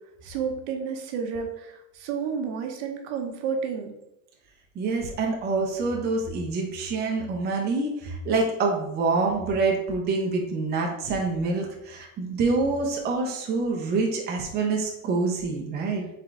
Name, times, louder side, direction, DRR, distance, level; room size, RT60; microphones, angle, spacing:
voice 1, 0.2-3.9, right 6 dB, 65° right, 3 dB, 0.9 m, -31 dB
voice 2, 4.8-16.0, right 3 dB, 25° right, 0 dB, 0.7 m, -26 dB
3.7 x 3.7 x 3.3 m, 0.84 s
supercardioid pair, 135°, 39 cm